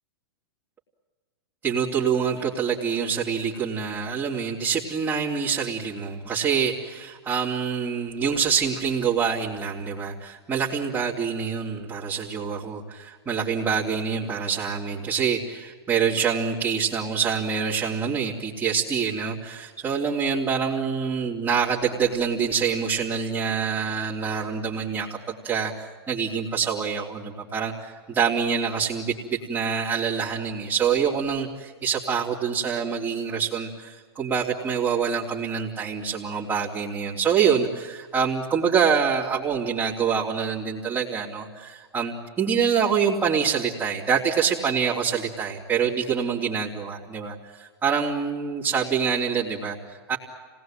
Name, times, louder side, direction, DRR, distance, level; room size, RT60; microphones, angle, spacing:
voice 1, 1.6-50.2, right 6 dB, 15° right, -7 dB, 3.5 m, -26 dB
26.5 x 19.5 x 9.2 m, 1.5 s
hypercardioid pair, 130°, 13 cm